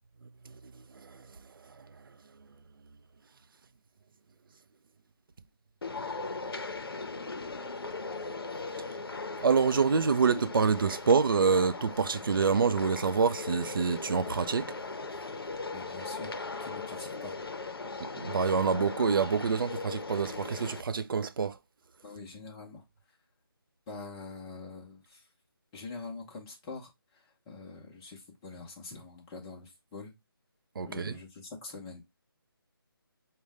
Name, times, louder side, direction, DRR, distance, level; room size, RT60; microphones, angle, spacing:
sound 1, 5.8-20.8, left 3 dB, 75° left, 0.6 m, -39 dB
voice 1, 9.4-14.7 18.0-21.6 30.8-31.1, right 5 dB, 65° right, 0.4 m, -26 dB
voice 2, 15.7-18.1 22.0-22.8 23.9-25.2 25.7-30.1 30.8-32.0, left 3 dB, 10° left, 0.7 m, -45 dB
5.2 x 2.2 x 3.4 m
figure-of-eight pair, 160°, 13 cm